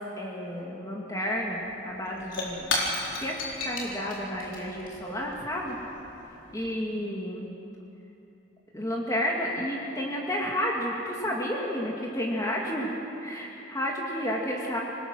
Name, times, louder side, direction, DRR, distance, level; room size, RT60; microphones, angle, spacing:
voice 1, 0.2-2.8 3.2-3.3 3.6-5.8 6.5-7.6 8.7-12.9 13.2-14.8, equal, 15° left, -3 dB, 2.3 m, -31 dB
Shatter / Crushing, 1.3-1.4 1.7-6.5, left 2 dB, 85° left, 4.4 m, -35 dB
26.5 x 20.0 x 6.4 m, 2.9 s
head